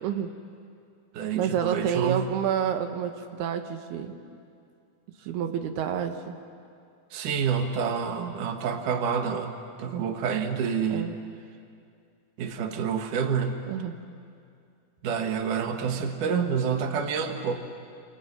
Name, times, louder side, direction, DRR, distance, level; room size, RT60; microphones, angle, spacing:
voice 1, 0.0-0.3 1.3-4.2 5.2-6.4 10.9-11.1 13.7-13.9, right 8 dB, 85° right, 6 dB, 3.2 m, -29 dB
voice 2, 1.1-2.3 7.1-9.5 9.8-11.1 12.4-13.6 15.0-17.6, right 6 dB, 60° right, 5 dB, 2.8 m, -28 dB
29.5 x 22.0 x 9.3 m, 2.4 s
omnidirectional pair, 4.5 m